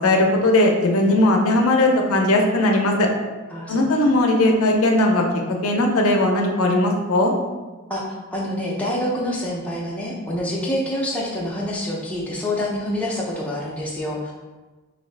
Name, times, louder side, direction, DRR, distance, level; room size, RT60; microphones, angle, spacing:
voice 1, 0.0-3.1 3.7-5.2 5.6-7.3, left 1 dB, 80° left, 2 dB, 0.5 m, -18 dB
voice 2, 3.5-4.2 7.9-14.3, left 1 dB, 5° left, -5 dB, 0.5 m, -27 dB
3.1 x 2.7 x 3.2 m, 1.2 s
head